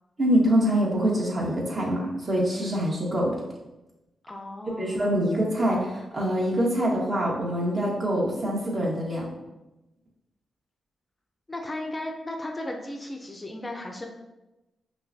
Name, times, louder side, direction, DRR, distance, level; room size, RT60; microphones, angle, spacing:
voice 1, 0.2-3.3 4.8-9.3, equal, 40° right, -4 dB, 1.3 m, -25 dB
voice 2, 4.3-5.3 11.5-14.1, left 1 dB, 25° left, 2 dB, 0.5 m, -35 dB
5.5 x 2.2 x 2.6 m, 1.0 s
cardioid pair, 60°, 0 cm